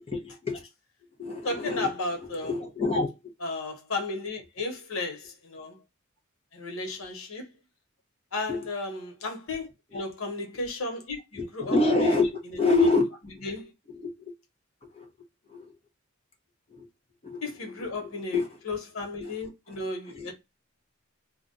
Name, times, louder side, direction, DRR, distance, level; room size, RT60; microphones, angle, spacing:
voice 1, 0.1-0.6 1.2-3.1 8.5-8.7 9.9-10.0 11.3-13.1 13.9-14.1 14.9-15.1 15.5-15.7 16.7-16.9 17.2-18.5 19.2-19.3 19.7-19.8 20.1-20.3, left 3 dB, 30° left, 0.8 m, -27 dB
voice 2, 1.4-2.5 3.4-5.8 6.5-7.5 8.3-12.2 13.4-13.7 17.4-18.4 18.6-20.3, left 2 dB, 90° left, 1.1 m, -34 dB
2.4 x 2.2 x 3.7 m
head